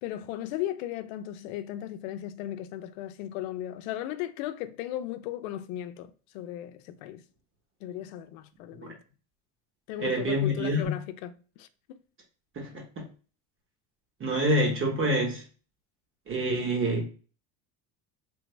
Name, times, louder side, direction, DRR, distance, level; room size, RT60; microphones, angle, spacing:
voice 1, 0.0-7.2 7.8-9.0 9.9-11.3 11.6-12.0, left 12 dB, 80° left, 0.6 m, -36 dB
voice 2, 10.0-10.9 12.6-13.0 14.2-15.4 16.3-17.1, equal, 30° right, 1.1 m, -27 dB
3.3 x 2.0 x 3.3 m
supercardioid pair, 100°, 41 cm